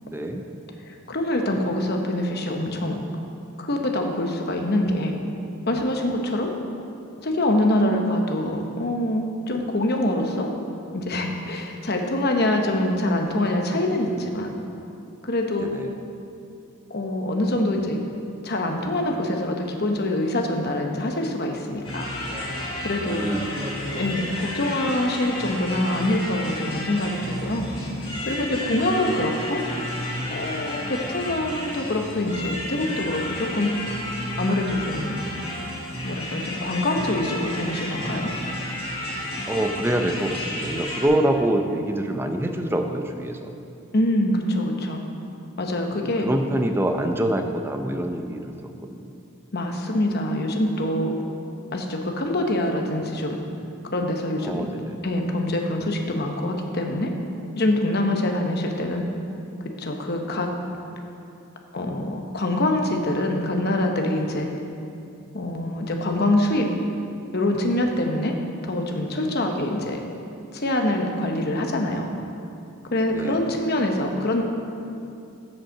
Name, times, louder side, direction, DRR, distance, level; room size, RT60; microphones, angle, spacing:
voice 1, 0.1-0.4 15.6-16.0 23.1-24.1 28.8-29.1 39.5-43.6 45.9-49.1 54.4-55.1 73.1-73.5, right 1 dB, 10° right, 4 dB, 0.5 m, -26 dB
voice 2, 0.9-3.0 3.6-5.1 5.7-6.5 7.2-10.5 10.9-14.5 15.2-15.7 16.9-18.0 18.4-22.1 22.8-23.2 24.0-27.7 28.3-29.6 30.3-33.8 34.4-35.2 36.0-38.3 43.9-45.0 45.6-46.3 49.5-51.1 51.7-53.4 53.8-54.8 55.0-57.1 57.5-59.0 59.8-60.5 61.7-64.5 65.3-66.7 67.3-68.3 68.6-70.0 70.5-72.2 72.9-74.4, left 1 dB, 45° left, 3 dB, 0.9 m, -25 dB
sound 1, 21.8-41.1, left 1 dB, 25° left, 1.9 m, -32 dB
7.7 x 7.3 x 6.6 m, 2.6 s
head